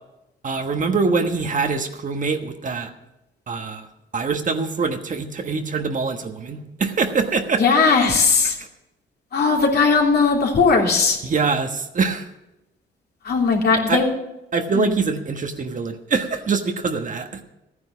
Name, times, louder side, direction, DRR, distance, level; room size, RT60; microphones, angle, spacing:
voice 1, 0.4-2.9 3.5-3.9 4.1-7.6 8.6-8.7 11.2-12.2 13.9-14.0 14.5-17.4, right 4 dB, 40° right, 6 dB, 1.3 m, -24 dB
voice 2, 7.6-8.6 9.3-11.2 13.2-14.1 14.7-14.9, left 4 dB, 55° left, 0 dB, 3.1 m, -18 dB
14.0 x 9.8 x 6.1 m, 0.94 s
cardioid pair, 90°, 20 cm